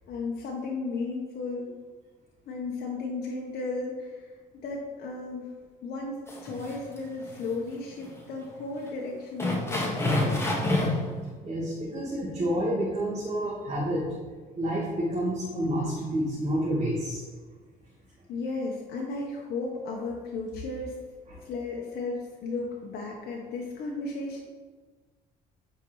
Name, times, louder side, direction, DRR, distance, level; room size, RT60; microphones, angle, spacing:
voice 1, 0.1-1.7 2.5-4.3 4.6-5.5 5.8-6.2 6.4-10.5 18.3-20.9 21.4-24.4, left 3 dB, 65° left, -2 dB, 1.3 m, -34 dB
sound 1, 6.3-7.0 7.3-7.4 8.0-8.1 8.5-8.6 9.4-11.1, left 1 dB, 15° left, 1.8 m, -27 dB
voice 2, 11.4-14.0 14.6-17.2 21.3-21.4, equal, 40° right, -8 dB, 2.4 m, -29 dB
9.6 x 5.5 x 4.0 m, 1.4 s
cardioid pair, 110°, 17 cm